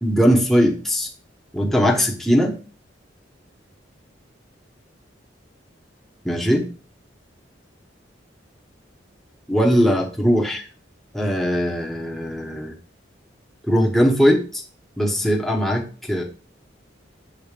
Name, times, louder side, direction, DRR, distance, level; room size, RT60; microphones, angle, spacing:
voice 1, 0.0-1.1 1.5-2.6 6.2-6.7 9.5-10.6 11.1-12.7 13.6-14.6 15.0-16.2, equal, ahead, -1 dB, 1.0 m, -20 dB
6.6 x 4.0 x 5.1 m, 0.36 s
head